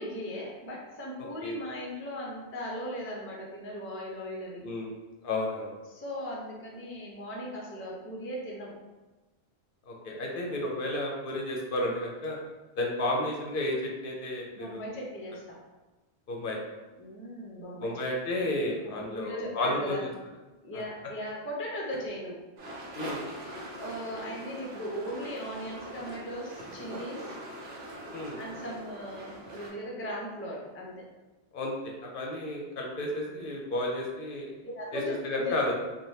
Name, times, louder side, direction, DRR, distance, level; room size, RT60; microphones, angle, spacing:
voice 1, 0.0-4.6 5.9-8.7 14.5-15.6 17.0-17.9 18.8-20.0 20.6-22.4 23.8-27.4 28.4-31.1 34.6-35.6, equal, 20° left, -3 dB, 0.4 m, -38 dB
voice 2, 4.6-5.0 5.2-5.7 9.9-12.4 12.8-14.9 16.3-16.6 17.8-20.1 20.7-20.8 22.9-23.2 28.1-28.4 31.5-31.7 32.0-34.5 34.9-35.7, left 1 dB, 65° left, -1 dB, 0.7 m, -32 dB
sound 1, 22.6-29.7, right 1 dB, 90° right, 0.9 m, -42 dB
3.2 x 2.2 x 2.7 m, 1.2 s
omnidirectional pair, 1.0 m